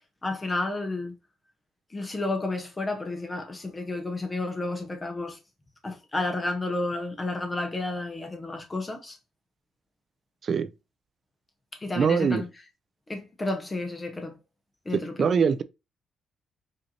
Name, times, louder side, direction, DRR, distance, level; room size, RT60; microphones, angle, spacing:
voice 1, 0.2-1.2 1.9-5.4 5.8-9.2 11.8-12.5 13.1-14.3 14.9-15.3, left 2 dB, 20° left, 0.7 m, -31 dB
voice 2, 12.0-12.4 14.9-15.6, right 6 dB, 50° right, 0.4 m, -23 dB
5.0 x 2.6 x 2.7 m
cardioid pair, 90°, 0 cm